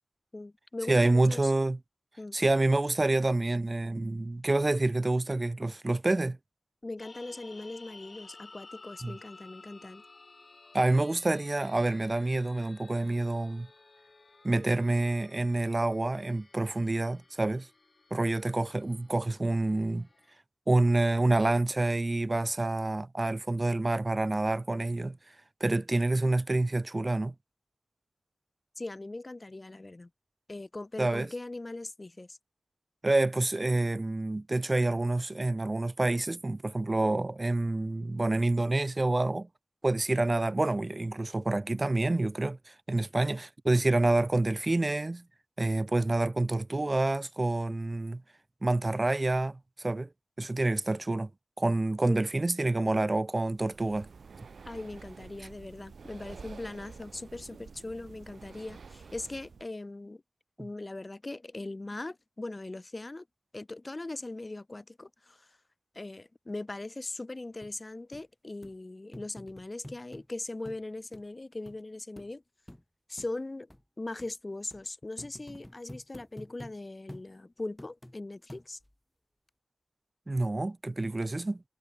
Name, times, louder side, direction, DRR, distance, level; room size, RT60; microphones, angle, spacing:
voice 1, 0.3-1.5 2.2-2.4 6.8-10.0 28.8-30.1 30.5-32.4 52.0-52.2 54.6-60.2 60.6-63.3 63.5-65.6 65.9-72.4 73.1-73.7 74.0-78.8, left 2 dB, 35° left, 2.5 m, -40 dB
voice 2, 0.9-1.8 2.3-6.4 9.0-9.2 10.7-13.7 14.4-17.7 18.1-20.1 20.7-25.2 25.6-27.3 31.0-31.3 33.0-39.5 39.8-45.2 45.6-48.2 48.6-50.1 50.4-51.3 51.6-54.1 80.3-81.6, right 2 dB, 35° right, 0.5 m, -27 dB
sound 1, 7.0-20.4, left 3 dB, 50° left, 1.8 m, -54 dB
Breathing, 53.5-59.7, right 5 dB, 80° right, 0.6 m, -49 dB
sound 2, 67.6-67.7 68.1-68.2 68.6-68.8 69.1-70.3 70.7-70.8 71.1-71.2 71.7-71.8 72.2-72.3 72.7-72.8 73.2-73.3 73.7-73.8 74.2-74.3 74.7-74.8 75.2-76.8 77.1-77.3 77.8-78.2 78.5-78.9 79.5-79.6, left 1 dB, 10° left, 2.2 m, -48 dB
cardioid pair, 55°, 0 cm